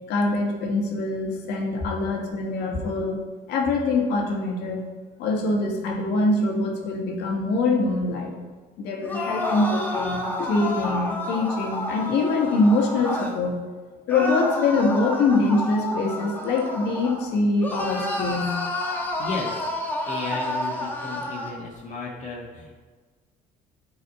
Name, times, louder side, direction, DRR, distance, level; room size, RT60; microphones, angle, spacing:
voice 1, 0.1-3.2 3.5-4.8 5.2-8.3 8.8-13.6 14.1-18.5, left 3 dB, 85° left, 0 dB, 1.6 m, -24 dB
sound 1, 9.0-13.4 14.1-17.3 17.6-21.6, left 1 dB, 10° left, 1.3 m, -30 dB
voice 2, 19.2-22.8, left 3 dB, 45° left, -3 dB, 1.5 m, -34 dB
9.4 x 4.8 x 4.1 m, 1.4 s
cardioid pair, 110°, 17 cm